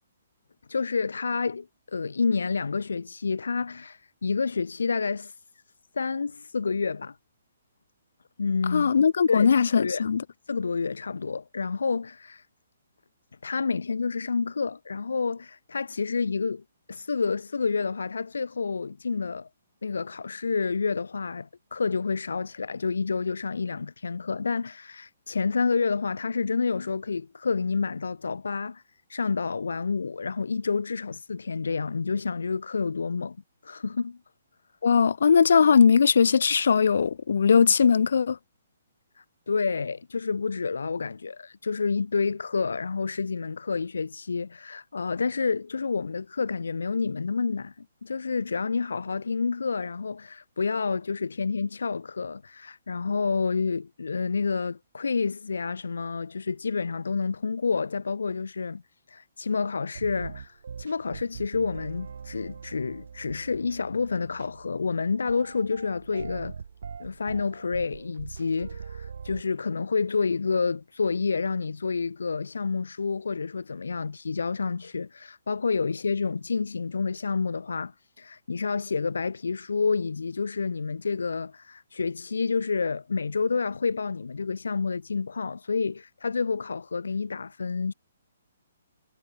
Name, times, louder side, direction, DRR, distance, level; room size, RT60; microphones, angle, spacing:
voice 1, 0.7-5.3 5.9-7.2 8.4-8.9 9.3-10.1 10.5-12.4 13.4-19.5 19.8-28.8 29.1-33.4 33.6-34.2 39.2-58.8 59.1-66.5 67.0-87.9, left 4 dB, 90° left, 3.1 m, -29 dB
voice 2, 8.7-10.2 34.8-38.4, left 6 dB, 70° left, 0.7 m, -20 dB
sound 1, 59.9-69.4, right 6 dB, 70° right, 4.1 m, -42 dB
hypercardioid pair, 155°, 0 cm